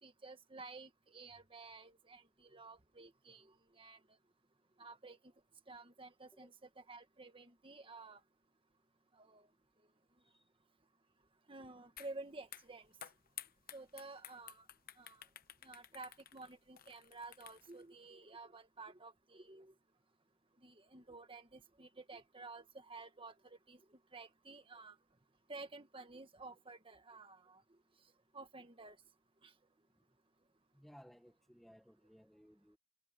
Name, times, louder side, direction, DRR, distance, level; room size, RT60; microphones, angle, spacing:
voice 1, 0.0-4.0 4.8-5.2 5.7-8.2 9.2-9.5 11.5-12.9 13.7-14.7 15.0-15.2 15.6-19.7 20.6-23.8 24.1-25.0 25.5-27.6 28.3-29.0 29.4-29.5, right 3 dB, 25° right, 1.5 m, -52 dB
sound 1, 12.0-12.1 12.4-17.8, left 11 dB, 45° left, 0.9 m, -53 dB
voice 2, 30.7-32.8, equal, ahead, 1.0 m, -61 dB
head